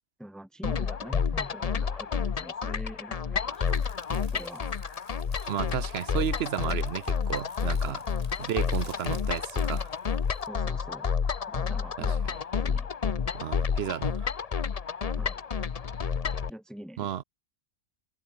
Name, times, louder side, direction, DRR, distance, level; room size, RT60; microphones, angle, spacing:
voice 1, 0.2-3.8 4.3-4.7 7.9-8.0 10.5-11.1 11.5-12.3 12.6-12.9 15.2-15.4 16.5-17.1, right 1 dB, ahead, 1.7 m, -44 dB
sound 1, 0.6-16.5, left 6 dB, 40° left, 0.8 m, -30 dB
sound 2, 3.5-10.5, right 1 dB, 35° right, 7.0 m, -55 dB
voice 2, 5.4-8.0 8.4-9.9 12.0-12.1 13.3-14.3 17.0-17.2, right 10 dB, 65° right, 0.9 m, -33 dB
omnidirectional pair, 1.2 m